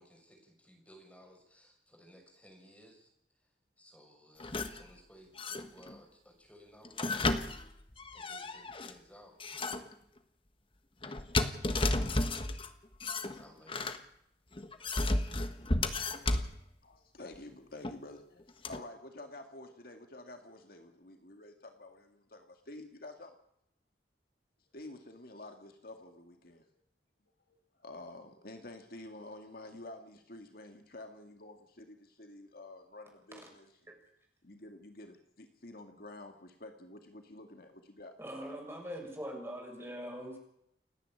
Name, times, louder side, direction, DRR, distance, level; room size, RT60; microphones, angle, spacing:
voice 1, 0.0-3.1 3.8-7.2 8.1-9.4 11.5-12.0 13.4-13.9, equal, 10° left, 1 dB, 6.5 m, -58 dB
sound 1, 4.4-4.8 5.4-6.0 6.8-8.9 9.4-9.9 11.0-12.7 13.0-14.0 14.6-16.6 17.8-18.0 18.6-18.8, left 2 dB, 30° left, 1.4 m, -33 dB
voice 2, 16.8-23.4 24.7-26.6 27.5-33.9 34.4-38.1, left 2 dB, 60° left, 5 dB, 2.2 m, -50 dB
voice 3, 38.2-40.4, equal, 15° right, 1 dB, 6.6 m, -42 dB
29.5 x 10.5 x 8.9 m, 0.75 s
head